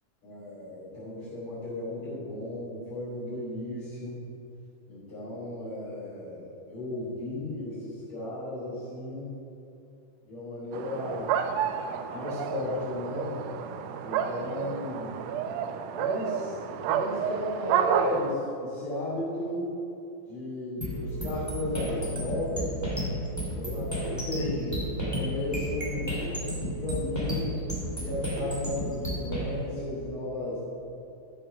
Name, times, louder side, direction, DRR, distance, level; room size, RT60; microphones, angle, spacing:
voice 1, 0.2-4.2 4.9-9.3 10.3-11.4 12.1-13.4 14.0-15.2 15.9-16.6 16.8-19.7 20.3-22.8 23.5-26.2 26.6-27.5 27.9-30.6, left 1 dB, 45° left, -13 dB, 3.8 m, -34 dB
sound 1, 10.7-18.3, right 8 dB, 90° right, 1.4 m, -30 dB
sound 2, 20.8-29.4, equal, 5° left, 2.1 m, -32 dB
13.0 x 6.8 x 6.1 m, 2.8 s
omnidirectional pair, 3.6 m